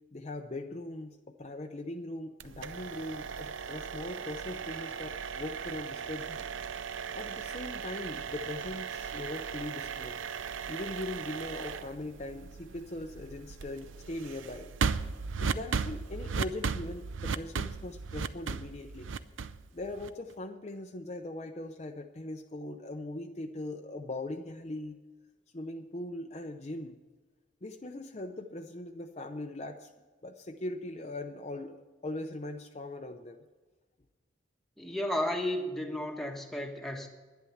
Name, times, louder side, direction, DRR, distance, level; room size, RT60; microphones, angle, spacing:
voice 1, 0.1-6.5 7.1-10.2 10.7-14.7 15.4-19.1 19.7-25.0 25.5-27.0 27.6-29.9 30.2-33.4, left 2 dB, 35° left, 4 dB, 0.6 m, -40 dB
sound 1, 2.4-20.3, right 5 dB, 80° right, 0.6 m, -37 dB
voice 2, 34.8-37.1, left 1 dB, ahead, 2 dB, 1.3 m, -33 dB
11.0 x 10.5 x 7.1 m, 1.3 s
head